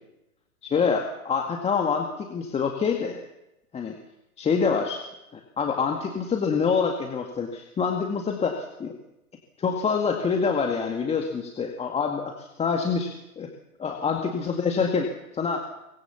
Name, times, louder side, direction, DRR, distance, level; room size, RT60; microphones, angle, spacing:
voice 1, 0.6-3.2 3.7-3.9 4.4-5.0 5.3-8.9 9.6-13.5 13.8-15.6, left 5 dB, 15° left, 3 dB, 2.0 m, -26 dB
24.0 x 20.5 x 7.2 m, 0.91 s
hypercardioid pair, 120°, 43 cm